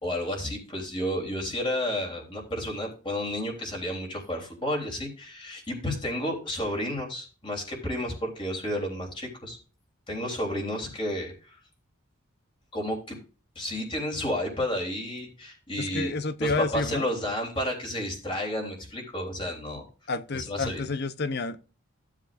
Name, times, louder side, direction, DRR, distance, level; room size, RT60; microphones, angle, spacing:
voice 1, 0.0-9.6 10.1-11.6 12.7-13.2 13.5-16.1 16.4-19.8 20.3-20.8, left 1 dB, 25° left, 3.4 m, -31 dB
voice 2, 15.8-17.1 20.1-21.6, left 3 dB, 50° left, 0.7 m, -30 dB
15.5 x 7.4 x 2.5 m
head